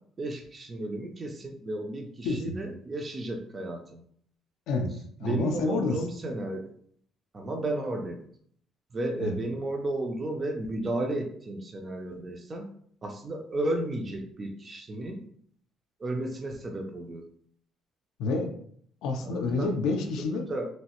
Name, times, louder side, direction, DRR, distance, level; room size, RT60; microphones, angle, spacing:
voice 1, 0.2-4.0 5.2-6.6 7.3-8.2 8.9-12.7 13.0-15.2 16.0-17.2 19.2-19.7 20.5-20.7, right 1 dB, 20° right, 1 dB, 0.3 m, -33 dB
voice 2, 2.2-2.6 4.7-4.9 5.2-6.0 9.2-9.4 18.2-18.5 19.0-20.5, left 3 dB, 85° left, 3 dB, 0.4 m, -28 dB
3.1 x 2.4 x 2.9 m, 0.62 s
cardioid pair, 170°, 0 cm